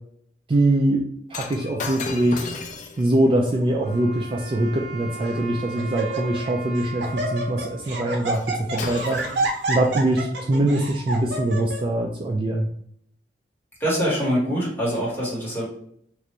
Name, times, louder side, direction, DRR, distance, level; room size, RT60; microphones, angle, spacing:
voice 1, 0.5-2.5 3.0-9.2 9.7-12.7, right 1 dB, 30° right, 1 dB, 0.3 m, -23 dB
Shatter, 1.3-5.7 8.3-8.5 8.8-10.3 11.0-11.2, left 4 dB, 45° left, 0.4 m, -37 dB
Laughter, 3.5-3.9 4.6-4.7 5.2-5.5 5.8-6.5 6.8-11.8, right 2 dB, 85° right, 0.7 m, -29 dB
Wind instrument woodwind instrument, 3.8-9.0, right 3 dB, 60° right, 1.4 m, -39 dB
voice 2, 13.8-15.7, equal, 15° left, -7 dB, 1.3 m, -24 dB
3.1 x 2.5 x 2.9 m, 0.66 s
head